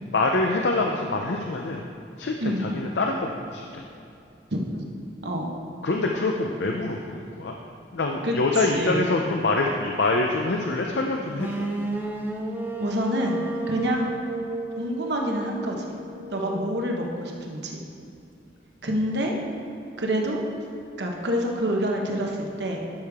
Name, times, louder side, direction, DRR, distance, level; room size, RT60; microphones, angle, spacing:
voice 1, 0.1-1.8 2.2-2.3 2.6-3.8 5.8-7.5 7.9-11.7, left 2 dB, 75° left, 1 dB, 0.6 m, -25 dB
voice 2, 2.4-2.8 4.5-4.9 5.2-5.5 8.2-9.1 12.8-13.4 13.7-14.1 14.8-16.0 16.3-17.8 18.8-19.3 20.0-20.4 21.0-22.8, equal, 75° right, 0 dB, 1.1 m, -27 dB
sound 1, 11.4-17.3, right 2 dB, 10° right, 0.7 m, -33 dB
12.0 x 6.6 x 3.6 m, 2.6 s
head